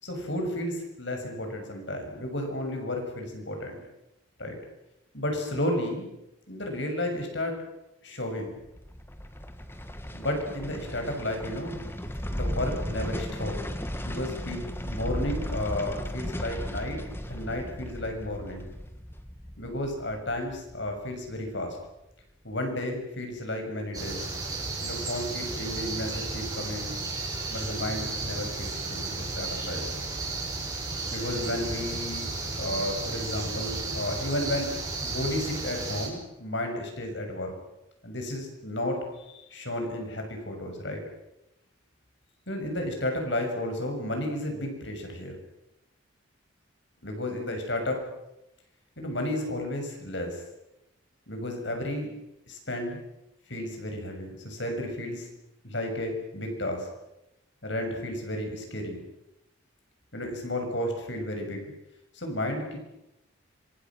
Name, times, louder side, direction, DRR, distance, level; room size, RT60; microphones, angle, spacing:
voice 1, 0.0-3.8 4.4-4.6 5.1-6.1 6.5-7.6 8.0-8.5 10.1-11.8 12.3-13.6 14.0-17.0 17.3-18.7 19.6-21.8 22.4-24.2 24.8-27.0 27.5-29.9 31.1-32.3 32.6-37.5 38.0-41.0 42.5-45.4 47.0-48.0 49.0-50.4 51.3-52.1 52.5-53.0 53.5-55.3 55.6-56.9 57.6-59.0 60.1-61.6 62.1-62.8, left 1 dB, 65° left, 3 dB, 7.0 m, -32 dB
sound 1, 8.6-21.8 22.1-22.2, equal, 10° left, 1.7 m, -36 dB
sound 2, 23.9-36.1, right 3 dB, 20° right, 6.5 m, -33 dB
26.5 x 26.0 x 6.4 m, 0.90 s
head